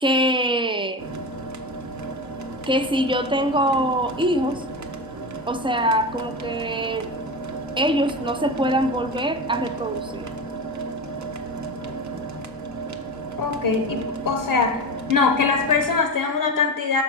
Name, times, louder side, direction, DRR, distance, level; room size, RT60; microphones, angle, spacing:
voice 1, 0.0-1.0 2.7-4.6 5.5-7.1 7.8-10.3, equal, 15° right, 9 dB, 0.4 m, -23 dB
sound 1, 1.0-16.0, right 3 dB, 45° right, 0.8 m, -33 dB
voice 2, 13.4-14.8 15.1-17.0, left 5 dB, 55° left, 5 dB, 0.7 m, -22 dB
5.9 x 4.3 x 6.0 m, 1.1 s
cardioid pair, 65°, 41 cm